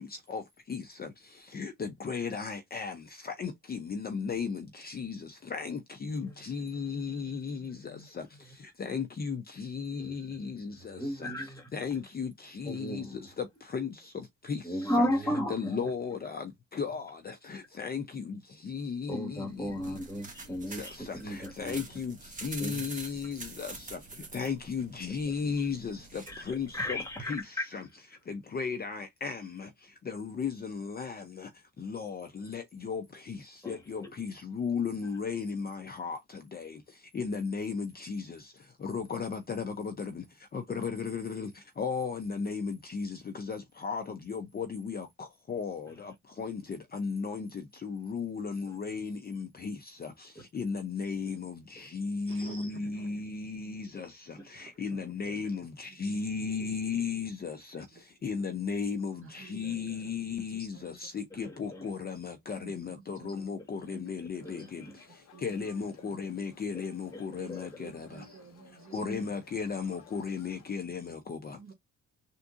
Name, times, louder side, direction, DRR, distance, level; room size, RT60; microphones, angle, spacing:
voice 1, 0.0-11.3 11.7-14.9 15.5-20.0 20.7-27.8 28.3-68.3 68.9-71.6, left 5 dB, 30° left, 0.5 m, -36 dB
voice 2, 6.1-8.1 8.4-8.5 10.0-10.2 10.8-11.7 12.6-13.2 14.6-15.9 19.1-21.8 22.6-22.9 25.3-25.6 26.3-27.6 33.6-34.1 40.7-40.8 45.9-46.0 48.7-48.8 51.2-51.4 51.7-51.9 55.2-55.4 61.3-61.9 63.9-65.0 66.7-66.8 67.1-67.7, equal, 10° left, 1.6 m, -36 dB
sound 1, 19.5-27.4, right 3 dB, 25° right, 1.2 m, -46 dB
voice 3, 52.3-53.1 54.4-55.0 55.3-55.4 55.8-56.0 56.5-56.7 57.9-58.5 59.1-60.0 60.4-60.8 61.3-61.4 61.7-61.9 62.6-63.4 63.8-64.0 64.4-64.6 65.3-65.7 66.0-66.1 67.4-67.5 67.8-69.2 71.6-71.7, right 6 dB, 45° right, 0.9 m, -52 dB
sound 2, 64.3-70.7, left 6 dB, 60° left, 1.0 m, -58 dB
3.5 x 2.6 x 2.4 m
cardioid pair, 90°, 30 cm